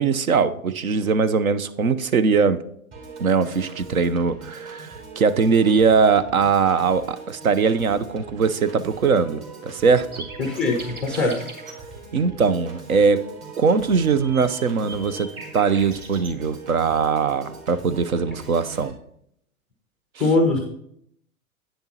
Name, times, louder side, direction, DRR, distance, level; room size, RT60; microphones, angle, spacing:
voice 1, 0.0-2.6 3.2-10.3 11.2-11.3 12.1-13.3 13.6-18.9, right 5 dB, 75° right, 14 dB, 0.8 m, -21 dB
Piano / Organ, 2.9-18.9, right 4 dB, 35° right, 3.0 m, -41 dB
sound 1, 10.1-11.8 13.9-16.3, right 2 dB, 20° right, 2.1 m, -40 dB
voice 2, 10.4-11.5 20.2-20.6, left 2 dB, ahead, 3 dB, 0.3 m, -21 dB
10.5 x 9.1 x 2.8 m, 0.70 s
figure-of-eight pair, 100°, 43 cm